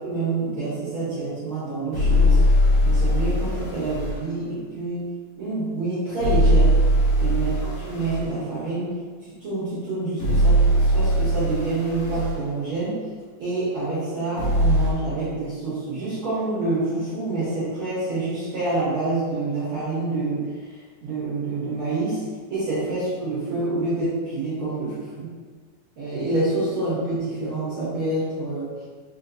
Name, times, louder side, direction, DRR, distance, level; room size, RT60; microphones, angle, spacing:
voice 1, 0.0-2.4 2.8-5.1 5.4-6.7 7.2-9.0 9.4-13.0 13.4-20.5 21.0-22.2 22.5-25.3 26.0-28.7, right 2 dB, 70° right, -10 dB, 1.2 m, -27 dB
sound 1, 1.9-4.2 6.2-8.3 10.2-12.4 14.4-14.9, equal, 60° left, 1.6 m, -20 dB
5.4 x 2.9 x 2.5 m, 1.5 s
omnidirectional pair, 3.9 m